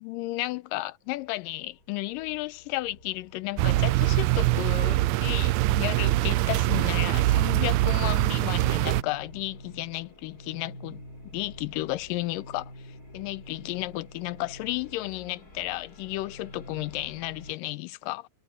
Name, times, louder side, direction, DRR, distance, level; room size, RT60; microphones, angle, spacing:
voice 1, 0.0-11.0 11.3-18.3, left 18 dB, 90° left, 2.3 m, -33 dB
sound 1, 1.1-17.5, left 1 dB, 25° left, 5.6 m, -49 dB
sound 2, 3.6-9.0, right 17 dB, 85° right, 1.6 m, -23 dB
omnidirectional pair, 3.8 m